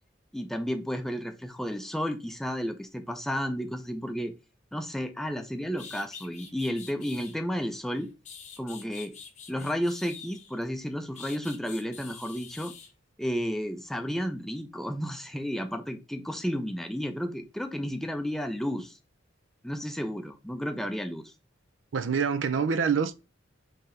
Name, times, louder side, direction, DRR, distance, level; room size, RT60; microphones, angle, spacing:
voice 1, 0.3-4.3 4.7-8.1 8.6-9.1 9.5-12.7 13.2-18.9 19.6-21.3, equal, ahead, 0.4 m, -32 dB
sound 1, 5.4-5.5 5.8-7.4 8.0-10.6 11.1-12.9, left 6 dB, 40° left, 0.8 m, -46 dB
voice 2, 21.9-23.1, right 6 dB, 80° right, 0.5 m, -26 dB
5.6 x 2.8 x 3.2 m
head